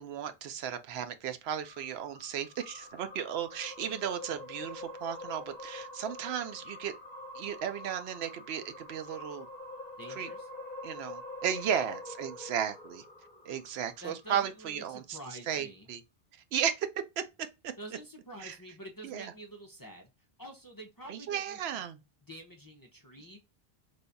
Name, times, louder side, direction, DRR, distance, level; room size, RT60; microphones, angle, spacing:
voice 1, 0.0-6.9 7.3-9.5 10.2-10.3 10.8-13.0 13.4-15.2 15.5-16.0 16.5-16.9 17.2-17.7 18.4-18.5 19.0-19.3 21.1-22.0, right 9 dB, 90° right, 0.8 m, -35 dB
sound 1, 1.6-14.1, left 2 dB, 45° left, 1.0 m, -45 dB
voice 2, 10.0-10.5 14.0-15.9 17.8-20.1 20.4-21.8 22.3-23.4, right 1 dB, 25° left, 0.5 m, -48 dB
3.4 x 2.3 x 3.8 m
omnidirectional pair, 1.0 m